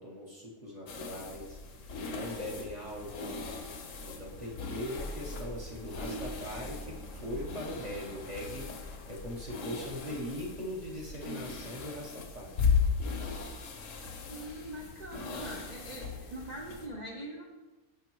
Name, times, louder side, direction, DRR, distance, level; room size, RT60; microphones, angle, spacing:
voice 1, 0.0-3.4 4.0-12.5, equal, 35° right, -4 dB, 0.9 m, -41 dB
sound 1, 0.9-16.9, left 5 dB, 70° left, 1.0 m, -37 dB
voice 2, 14.3-17.4, right 1 dB, 65° right, 0 dB, 0.4 m, -43 dB
10.5 x 3.8 x 3.0 m, 1.2 s
omnidirectional pair, 1.5 m